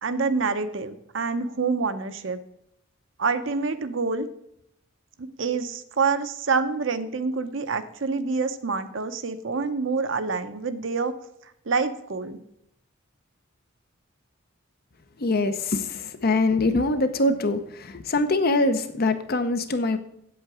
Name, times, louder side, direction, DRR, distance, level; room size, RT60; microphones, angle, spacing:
voice 1, 0.0-2.4 3.2-4.3 5.2-11.1 11.7-12.4, right 4 dB, 65° right, 10 dB, 0.7 m, -27 dB
voice 2, 15.2-20.0, left 2 dB, 50° left, 10 dB, 0.7 m, -23 dB
8.4 x 8.0 x 4.8 m, 0.75 s
head